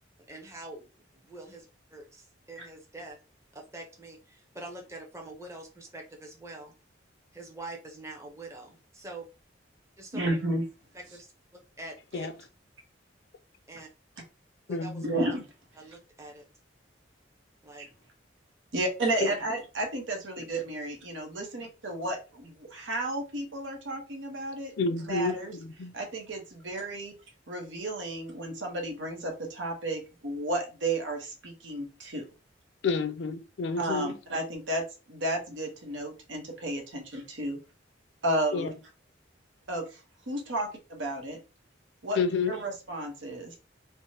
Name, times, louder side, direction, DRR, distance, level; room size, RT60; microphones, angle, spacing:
voice 1, 0.3-0.9 1.1-1.7 1.9-3.2 3.5-6.7 7.3-9.3 10.0-10.4 10.9-11.3 11.8-12.3 13.7-13.9 14.7-15.3 15.8-16.4 17.6-17.9, right 2 dB, 15° right, 0.6 m, -44 dB
voice 2, 10.1-10.6 15.0-15.4 17.8-17.9 18.7-24.7 25.0-25.6 25.9-27.1 27.5-32.2 33.8-37.6 38.2-38.7 39.7-40.0 40.3-41.4 42.0-42.2 42.5-43.6, right 1 dB, 90° right, 0.9 m, -32 dB
voice 3, 14.7-15.2 24.8-25.9 32.8-34.1 38.5-38.7 42.2-42.5, left 4 dB, 70° left, 0.4 m, -30 dB
3.3 x 2.1 x 2.7 m
head